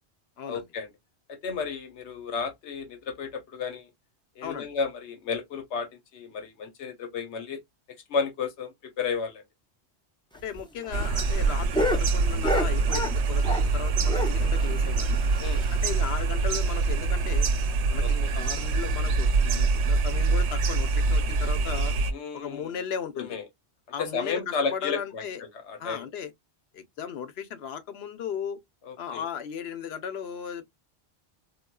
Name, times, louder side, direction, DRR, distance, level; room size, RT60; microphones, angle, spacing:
voice 1, 0.5-0.9 1.3-3.9 4.4-7.6 8.1-9.4 15.4-15.6 18.0-18.3 22.1-22.8 23.1-23.4 24.0-26.1 28.9-29.2, left 5 dB, 90° left, 1.2 m, -33 dB
voice 2, 4.4-4.7 10.4-15.2 15.7-17.5 17.9-21.9 22.3-23.4 23.9-25.4 25.8-26.3 26.7-28.6 29.0-30.7, left 7 dB, 70° left, 0.9 m, -36 dB
sound 1, 10.3-13.8 14.1-16.1 16.4-16.5 16.7-16.8 17.2-17.3 17.9-18.2 19.0-19.2, left 1 dB, 5° left, 0.4 m, -31 dB
sound 2, 10.9-22.1, right 4 dB, 80° right, 0.9 m, -25 dB
3.7 x 2.3 x 2.2 m
omnidirectional pair, 1.1 m